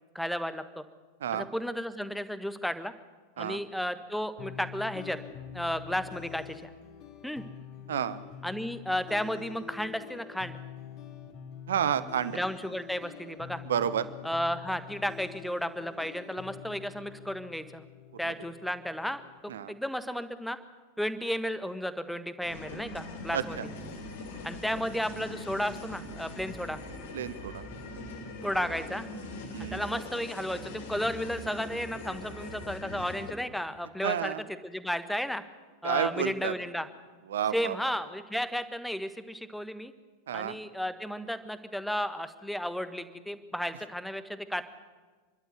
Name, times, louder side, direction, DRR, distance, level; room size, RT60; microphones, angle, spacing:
voice 1, 0.1-0.8 1.3-2.9 3.4-5.2 5.5-6.7 7.2-7.4 8.4-10.6 12.3-13.6 14.2-17.8 18.2-20.6 21.0-23.6 24.4-26.8 28.4-29.1 29.6-34.3 34.6-35.4 35.8-36.9 37.5-39.9 40.3-44.6, equal, ahead, 11 dB, 1.4 m, -33 dB
sound 1, 4.4-19.4, left 9 dB, 40° left, 3.0 m, -46 dB
voice 2, 7.9-8.2 11.7-12.4 13.6-14.0 19.5-19.7 23.3-23.7 27.1-27.6 29.5-29.8 34.0-34.4 35.8-36.5 37.3-37.9 40.3-40.6, right 9 dB, 60° right, 14 dB, 1.1 m, -30 dB
sound 2, 22.4-33.3, left 2 dB, 60° left, 3.8 m, -41 dB
27.5 x 12.0 x 9.5 m, 1.4 s
figure-of-eight pair, 90°, 0 cm